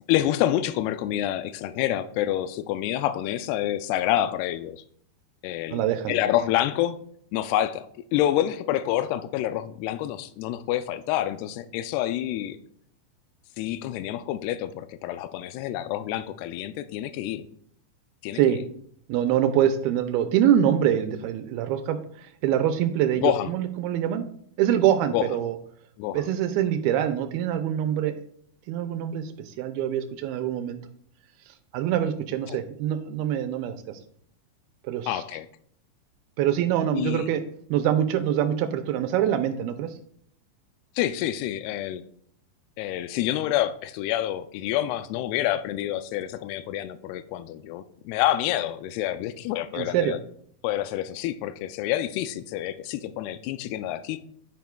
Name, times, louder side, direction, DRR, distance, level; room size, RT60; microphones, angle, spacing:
voice 1, 0.1-4.8 5.4-7.0 7.3-7.9 8.1-12.6 13.6-17.5 18.2-18.6 23.2-23.5 25.1-25.3 26.0-26.3 32.5-32.6 35.1-35.5 36.9-37.3 41.0-42.0 42.8-50.2 50.6-54.2, left 13 dB, 85° left, 11 dB, 2.5 m, -27 dB
voice 2, 5.7-6.1 18.3-18.6 19.1-24.2 24.6-25.6 26.1-28.2 28.7-30.8 31.5-34.0 34.8-35.2 36.4-37.4 37.7-40.0 49.7-50.2, right 10 dB, 85° right, 8 dB, 2.4 m, -25 dB
9.4 x 9.3 x 2.3 m, 0.65 s
omnidirectional pair, 4.5 m